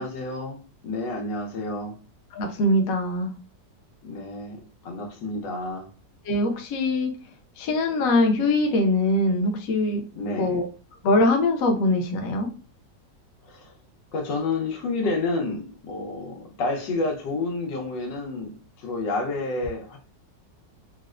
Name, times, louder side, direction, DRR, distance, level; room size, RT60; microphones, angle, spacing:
voice 1, 0.0-1.9 4.0-5.9 10.1-10.6 13.5-13.7 14.1-20.0, left 2 dB, 90° left, 2 dB, 1.5 m, -30 dB
voice 2, 2.3-3.3 6.3-7.1 7.6-10.0 10.4-10.6 11.0-12.5, left 2 dB, 65° left, 3 dB, 0.9 m, -22 dB
4.0 x 2.1 x 2.4 m, 0.36 s
omnidirectional pair, 1.9 m